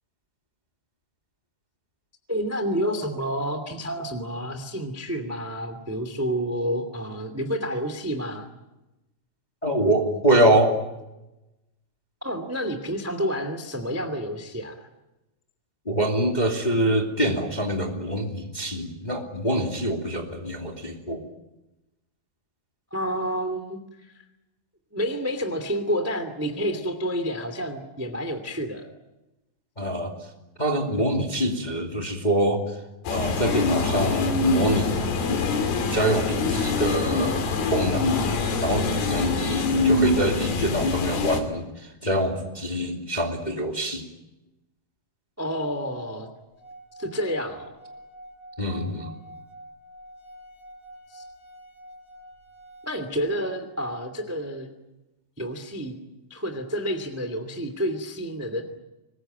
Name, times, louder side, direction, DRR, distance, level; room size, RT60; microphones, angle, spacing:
voice 1, 2.3-8.5 12.2-14.9 22.9-24.1 24.9-28.8 45.4-46.3 47.0-47.7 51.1-51.2 52.8-54.7 55.4-56.0 56.3-58.8, equal, 5° right, 8 dB, 1.1 m, -29 dB
voice 2, 9.6-10.7 15.8-21.2 29.8-30.1 30.6-32.8 33.1-35.0 35.9-37.4 37.7-38.1 38.6-44.1 48.6-49.1, right 1 dB, 15° left, 2 dB, 1.6 m, -25 dB
sound 1, 33.1-41.4, left 3 dB, 65° left, 4.4 m, -24 dB
Singing / Glass, 46.5-53.2, right 1 dB, 35° left, 6.6 m, -47 dB
24.5 x 20.5 x 9.2 m, 0.98 s
omnidirectional pair, 4.9 m